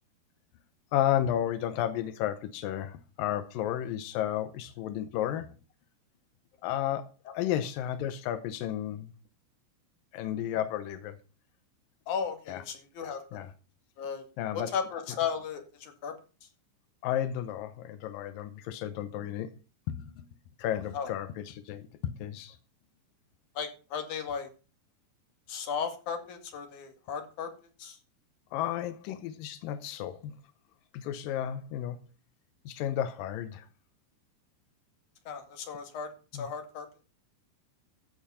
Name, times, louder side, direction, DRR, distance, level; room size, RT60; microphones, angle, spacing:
voice 1, 0.9-5.5 6.6-7.1 7.3-9.1 10.1-11.2 12.5-12.6 13.3-13.5 14.4-14.7 17.0-19.5 19.9-20.3 20.6-22.6 28.5-30.4 30.9-32.0 32.7-33.7 36.3-36.5, left 11 dB, 80° left, 2.0 m, -32 dB
voice 2, 12.1-13.4 14.0-14.2 14.5-16.1 20.9-21.1 23.5-24.5 25.5-27.5 27.8-28.0 35.2-36.9, left 7 dB, 50° left, 3.1 m, -35 dB
14.5 x 7.1 x 5.6 m
omnidirectional pair, 5.2 m